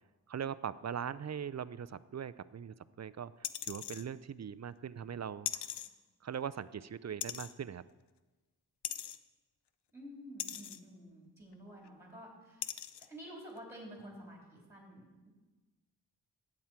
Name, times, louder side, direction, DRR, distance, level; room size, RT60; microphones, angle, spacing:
voice 1, 0.3-3.3 3.6-5.5 6.2-7.8, right 8 dB, 45° right, 17 dB, 0.4 m, -40 dB
sound 1, 3.4-4.0 5.5-5.9 7.2-7.5 8.8-9.2 10.4-10.8 11.8-11.9 12.6-13.1 13.6-13.7, left 10 dB, 90° left, 0.5 m, -39 dB
voice 2, 9.9-12.7 13.1-15.3, equal, 5° right, -2 dB, 3.7 m, -50 dB
11.0 x 8.8 x 4.5 m, 1.2 s
wide cardioid pair, 65°, 39 cm